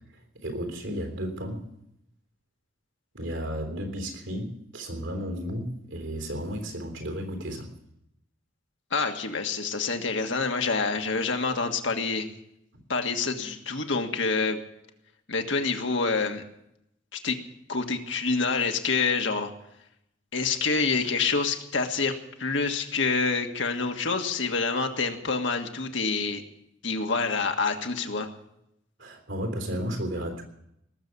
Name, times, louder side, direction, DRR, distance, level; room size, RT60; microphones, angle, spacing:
voice 1, 0.3-1.7 3.1-7.7 29.0-30.4, equal, 80° right, 4 dB, 3.6 m, -33 dB
voice 2, 8.9-12.3 12.9-14.6 15.3-16.4 17.1-17.4 17.7-19.5 20.3-22.1 22.4-26.4 26.8-28.3, left 4 dB, 70° left, 4 dB, 1.7 m, -27 dB
19.0 x 7.4 x 9.6 m, 0.80 s
head